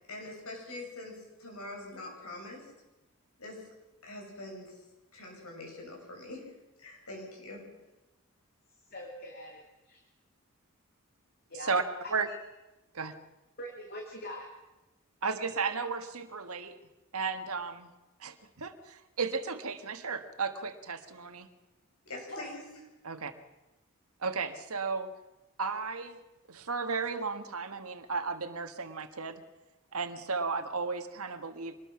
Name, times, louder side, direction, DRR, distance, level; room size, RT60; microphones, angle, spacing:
voice 1, 0.1-2.7 3.4-3.7 4.0-4.8 5.1-6.5 6.8-7.6 22.1-22.6, left 2 dB, 80° left, 0 dB, 7.3 m, -44 dB
voice 2, 8.9-9.6 9.8-10.0 11.5-12.1 13.6-14.5 22.3-22.5, left 1 dB, 45° left, 1 dB, 2.6 m, -42 dB
voice 3, 15.2-16.8 17.1-17.9 18.2-21.5 23.1-23.3 24.2-25.1 25.6-26.2 26.5-29.4 29.9-31.8, right 4 dB, 80° right, 7 dB, 1.6 m, -34 dB
25.0 x 20.0 x 6.0 m, 1.0 s
head